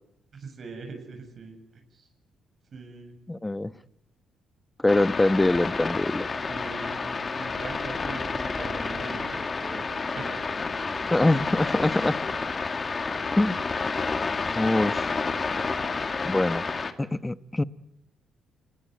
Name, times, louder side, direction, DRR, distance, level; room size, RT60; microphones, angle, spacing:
voice 1, 0.3-2.1 2.7-3.2 6.5-11.2, right 4 dB, 50° right, 5 dB, 7.6 m, -42 dB
voice 2, 3.3-3.7 4.8-6.3 11.1-12.2 13.4-13.6 14.5-15.1 16.2-16.7 17.0-17.6, left 2 dB, 15° left, 14 dB, 1.0 m, -24 dB
sound 1, 4.9-16.9, left 4 dB, 35° left, 2.0 m, -30 dB
28.5 x 20.5 x 9.4 m, 0.79 s
cardioid pair, 90°, 0 cm